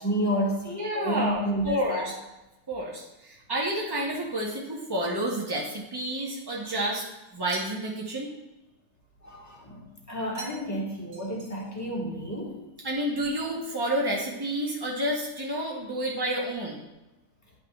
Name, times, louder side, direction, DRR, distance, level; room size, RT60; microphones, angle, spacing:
voice 1, 0.0-2.1 6.6-6.7 9.2-12.6, equal, 10° left, -2 dB, 1.1 m, -30 dB
voice 2, 0.7-1.4 1.6-2.1 2.7-7.0 7.3-8.3 12.8-16.8, right 1 dB, 30° right, -3 dB, 0.4 m, -30 dB
sound 1, 7.5-8.1 10.3-10.8 11.1-11.9, right 3 dB, 65° right, 1.8 m, -45 dB
10.5 x 5.6 x 2.3 m, 1.0 s
omnidirectional pair, 1.9 m